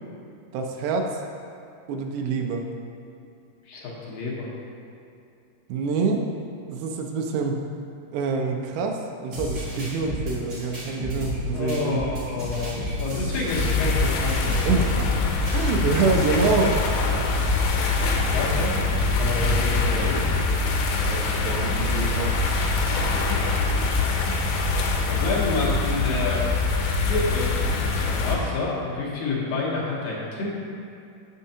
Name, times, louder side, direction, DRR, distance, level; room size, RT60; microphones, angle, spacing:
voice 1, 0.5-1.2 1.9-2.7 5.7-6.3 6.7-7.6 8.1-12.1 14.6-15.1 15.5-16.9 21.0-22.5, right 4 dB, 90° right, 2 dB, 2.7 m, -26 dB
voice 2, 3.7-4.5 11.5-14.8 18.1-20.3 22.9-23.5 25.1-26.5 27.1-27.5 27.8-30.6, left 3 dB, 70° left, -4 dB, 2.4 m, -29 dB
sound 1, 9.3-16.9, left 1 dB, 70° right, 1.0 m, -32 dB
sound 2, 13.5-28.4, left 3 dB, 90° left, 2.7 m, -24 dB
6.6 x 6.3 x 2.8 m, 2.5 s
omnidirectional pair, 4.7 m